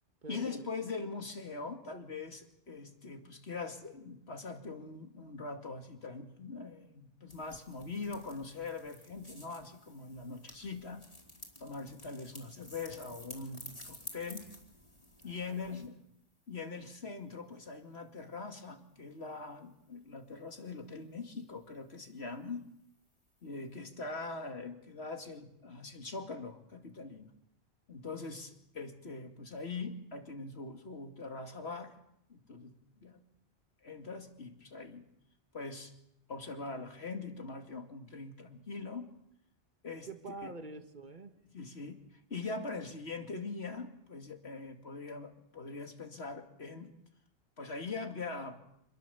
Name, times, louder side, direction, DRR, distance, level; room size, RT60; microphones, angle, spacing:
voice 1, 0.3-11.0 11.6-14.5 15.2-16.0 16.5-22.7 23.4-27.3 27.9-31.9 32.3-32.7 33.0-33.2 33.8-35.0 35.5-35.9 36.3-39.1 39.8-40.1 40.4-40.5 41.5-42.0 42.3-46.9 47.6-48.6, left 4 dB, 65° left, 5 dB, 2.6 m, -42 dB
sound 1, 7.3-15.9, left 1 dB, 35° left, 4.1 m, -52 dB
voice 2, 15.2-15.9 40.1-41.3, right 3 dB, 45° right, 8 dB, 1.8 m, -46 dB
27.0 x 21.0 x 7.0 m, 0.76 s
omnidirectional pair, 1.1 m